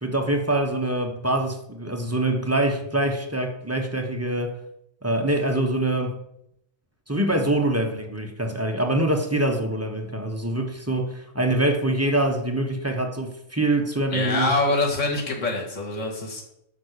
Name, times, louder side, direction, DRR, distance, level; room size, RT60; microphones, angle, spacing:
voice 1, 0.0-4.6 5.0-6.2 7.1-14.5, right 1 dB, 15° right, 3 dB, 1.0 m, -24 dB
voice 2, 14.1-16.4, left 2 dB, 75° left, 0 dB, 2.2 m, -25 dB
8.8 x 6.1 x 6.6 m, 0.79 s
omnidirectional pair, 1.3 m